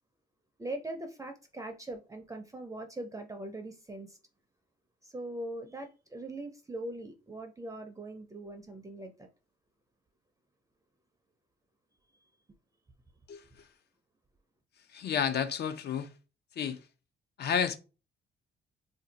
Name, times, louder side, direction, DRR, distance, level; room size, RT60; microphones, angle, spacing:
voice 1, 0.6-4.2 5.0-9.3, right 1 dB, 15° right, 0.5 m, -41 dB
voice 2, 14.9-16.1 16.6-16.8 17.4-17.8, left 7 dB, 55° left, 0.5 m, -30 dB
2.6 x 2.3 x 3.9 m
cardioid pair, 90°, 20 cm